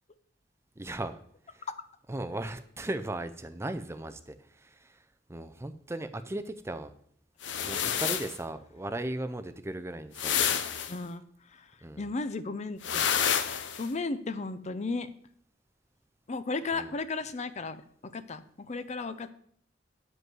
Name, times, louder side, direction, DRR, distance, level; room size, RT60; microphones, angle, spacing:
voice 1, 0.8-1.2 1.5-1.7 2.1-6.9 7.6-10.4 11.8-12.1 16.7-16.9, right 1 dB, 15° right, 10 dB, 0.4 m, -37 dB
sound 1, 7.4-8.4 10.2-10.9 12.8-13.9, left 8 dB, 75° left, 0.7 m, -29 dB
voice 2, 10.9-11.2 12.0-13.0 13.8-15.1 16.3-19.3, left 3 dB, 35° left, 12 dB, 0.5 m, -34 dB
9.5 x 5.4 x 6.1 m, 0.63 s
head